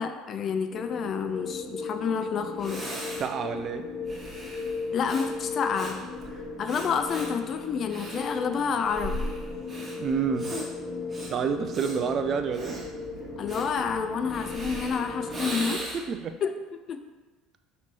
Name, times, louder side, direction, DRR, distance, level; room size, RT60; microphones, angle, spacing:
voice 1, 0.0-2.9 4.9-6.0 6.6-9.2 13.4-15.8 16.4-16.5 16.9-17.0, left 6 dB, 45° left, 8 dB, 0.4 m, -29 dB
sound 1, 0.7-15.8, left 4 dB, 10° left, 0.9 m, -37 dB
Breathing, 2.2-2.3 2.6-16.2, right 1 dB, 25° right, 1.1 m, -39 dB
voice 2, 3.2-3.8 10.0-10.6 11.3-12.8 15.5-16.3, right 6 dB, 45° right, 8 dB, 0.4 m, -29 dB
5.8 x 3.1 x 2.9 m, 1.3 s
hypercardioid pair, 70°, 0 cm